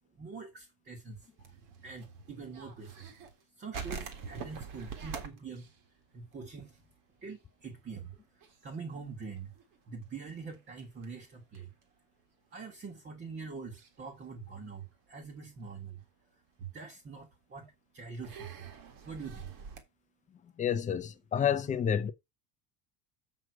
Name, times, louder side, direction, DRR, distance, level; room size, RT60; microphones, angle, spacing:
voice 1, 0.2-1.3 1.8-3.1 3.6-5.7 6.1-6.8 7.2-8.1 8.6-9.5 9.9-11.7 12.5-16.0 16.6-18.7 19.0-19.5, right 5 dB, 25° right, 1.5 m, -44 dB
sound 1, 1.2-3.4 3.7-7.0 7.2-7.4 7.8-8.1 8.4-11.8 12.6-12.7 13.7-14.0 14.5-15.2 15.7-15.8 17.1-17.2 18.2-19.8, right 6 dB, 45° right, 1.9 m, -45 dB
voice 2, 20.6-22.1, left 8 dB, 20° left, 0.5 m, -29 dB
7.6 x 6.3 x 4.5 m
cardioid pair, 180°, 44 cm